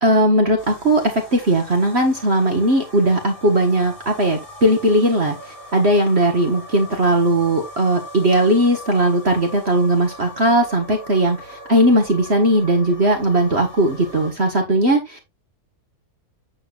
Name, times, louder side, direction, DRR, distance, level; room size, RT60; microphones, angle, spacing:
voice 1, 0.0-15.3, right 1 dB, 40° right, 1.9 m, -18 dB
sound 1, 0.6-14.3, left 1 dB, 35° left, 4.5 m, -40 dB
9.0 x 7.6 x 2.5 m
omnidirectional pair, 1.7 m